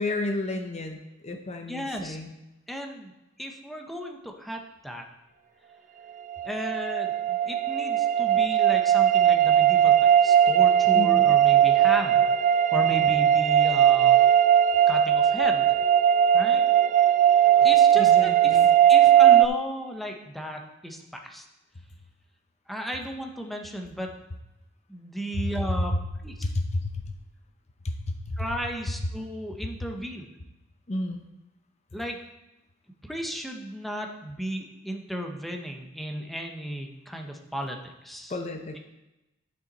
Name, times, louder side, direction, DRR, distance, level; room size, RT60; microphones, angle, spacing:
voice 1, 0.0-2.3 10.9-11.2 17.9-18.7 26.4-26.9 27.8-28.4 30.9-31.2 38.3-38.8, left 2 dB, 35° left, 5 dB, 0.6 m, -31 dB
voice 2, 1.7-2.2 2.7-3.1 3.4-5.0 6.4-14.2 14.9-15.8 16.3-16.6 17.4-18.6 18.9-21.4 22.7-24.1 24.9-25.9 26.2-26.5 28.4-30.3 31.9-32.2 33.0-38.4, equal, ahead, 2 dB, 0.8 m, -35 dB
sound 1, 6.3-19.5, right 10 dB, 40° right, 0.4 m, -19 dB
11.5 x 5.6 x 4.0 m, 0.97 s
head